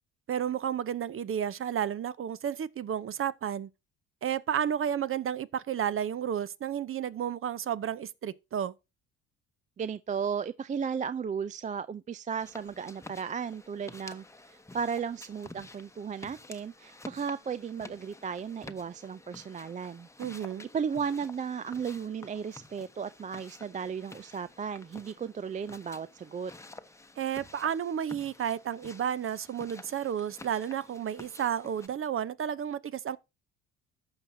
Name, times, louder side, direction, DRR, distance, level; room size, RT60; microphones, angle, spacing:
voice 1, 0.3-3.7 4.2-8.7 20.2-20.7 27.2-33.2, right 9 dB, 40° right, 0.8 m, -32 dB
voice 2, 9.8-20.1 20.7-26.5, right 6 dB, 25° right, 0.4 m, -35 dB
sound 1, 12.4-31.9, left 2 dB, 10° left, 1.0 m, -50 dB
14.0 x 5.7 x 2.7 m
hypercardioid pair, 65°, 31 cm